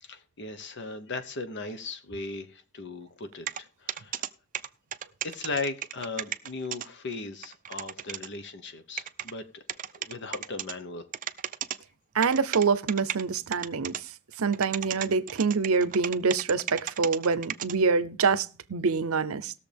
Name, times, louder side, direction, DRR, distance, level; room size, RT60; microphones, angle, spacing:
voice 1, 0.0-4.3 5.2-9.6 10.0-11.0, left 3 dB, 55° left, 1.1 m, -37 dB
sound 1, 3.5-3.6 3.9-4.3 4.5-6.9 7.1-7.2 7.4-8.3 9.0-9.3 9.7-10.7 11.1-11.8 12.2-13.2 13.5-14.0 14.3-17.7, right 10 dB, 40° right, 0.5 m, -34 dB
voice 2, 12.1-14.0 14.4-19.5, right 5 dB, 80° right, 0.7 m, -26 dB
19.0 x 6.9 x 3.4 m
head